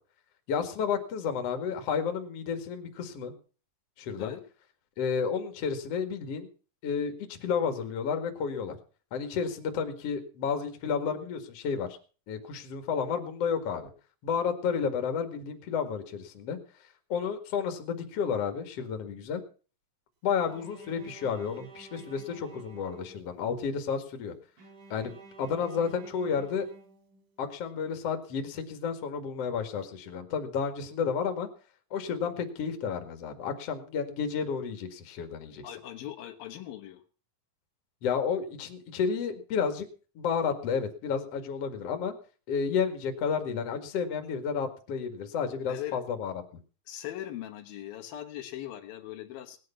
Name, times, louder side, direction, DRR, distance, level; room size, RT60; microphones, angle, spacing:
voice 1, 0.5-3.3 4.0-4.3 5.0-6.5 6.8-8.8 9.1-11.9 12.3-13.9 14.2-16.6 17.1-19.4 20.2-24.3 24.9-26.7 27.4-31.5 31.9-35.6 38.0-39.9 40.2-42.1 42.5-46.3, left 6 dB, 50° left, 7 dB, 2.6 m, -31 dB
Bowed string instrument, 20.4-23.6 24.6-27.5, right 4 dB, 60° right, 3.7 m, -52 dB
voice 2, 35.6-37.0 45.7-46.0 46.9-49.6, left 12 dB, 80° left, 6 dB, 3.0 m, -40 dB
18.5 x 9.7 x 5.7 m, 0.38 s
omnidirectional pair, 4.2 m